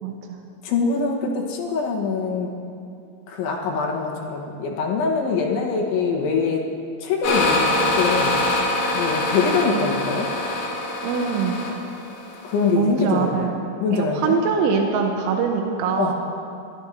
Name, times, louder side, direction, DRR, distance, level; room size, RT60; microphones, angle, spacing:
voice 1, 0.0-0.4 9.6-9.9 11.0-11.8 12.8-16.1, right 5 dB, 85° right, 2 dB, 3.3 m, -24 dB
voice 2, 0.6-2.5 3.3-6.6 7.0-8.3 8.9-10.3 12.4-13.5 13.8-14.4 16.0-16.1, left 4 dB, 80° left, 0 dB, 3.6 m, -23 dB
sound 1, 7.2-12.7, left 2 dB, 65° left, 3.9 m, -24 dB
26.0 x 12.5 x 2.7 m, 2.5 s
omnidirectional pair, 5.5 m